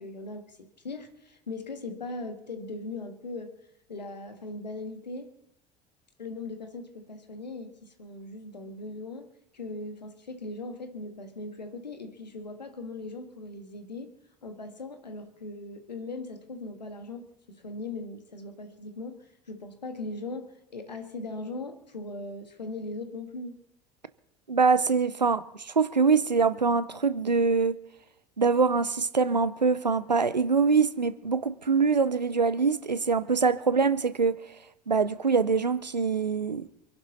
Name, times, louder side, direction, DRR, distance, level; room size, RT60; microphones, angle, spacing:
voice 1, 0.0-3.6 3.9-5.3 6.2-14.1 14.4-23.6, left 2 dB, 85° left, 2.0 m, -39 dB
voice 2, 24.5-27.8 28.4-34.4 34.9-36.6, right 5 dB, 90° right, 0.7 m, -24 dB
27.5 x 11.0 x 4.2 m
figure-of-eight pair, 60°, 21 cm